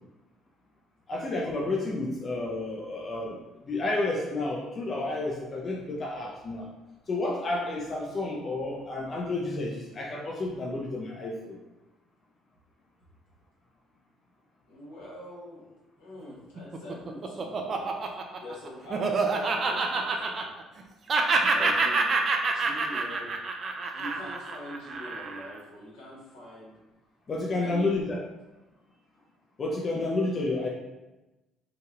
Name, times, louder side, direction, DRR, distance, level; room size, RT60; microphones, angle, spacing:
voice 1, 1.1-6.7 7.1-11.6 21.4-21.7 27.3-28.2 29.6-30.7, left 2 dB, 45° left, -2 dB, 0.5 m, -31 dB
voice 2, 14.7-15.7 16.0-17.9 18.4-20.5 21.5-22.1 22.5-23.3 23.9-26.7 27.5-28.0 30.2-30.4, left 1 dB, 90° left, -7 dB, 1.1 m, -43 dB
Laughter, 16.6-20.8 21.1-25.5, right 4 dB, 45° right, 0.4 m, -27 dB
2.9 x 2.2 x 2.9 m, 1.1 s
supercardioid pair, 65°, 0 cm